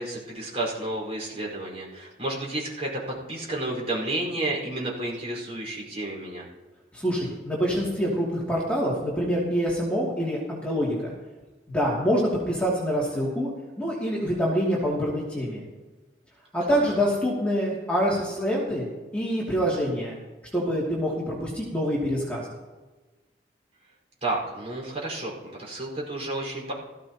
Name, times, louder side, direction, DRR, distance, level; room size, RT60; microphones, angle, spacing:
voice 1, 0.0-3.0 3.3-6.5 16.7-16.8 24.2-26.7, right 2 dB, 35° right, -3 dB, 4.8 m, -31 dB
voice 2, 6.9-11.1 11.7-13.5 13.8-15.6 16.5-18.9 19.1-20.2 20.5-22.5, equal, 5° left, -6 dB, 2.6 m, -26 dB
18.0 x 15.0 x 3.0 m, 1.2 s
head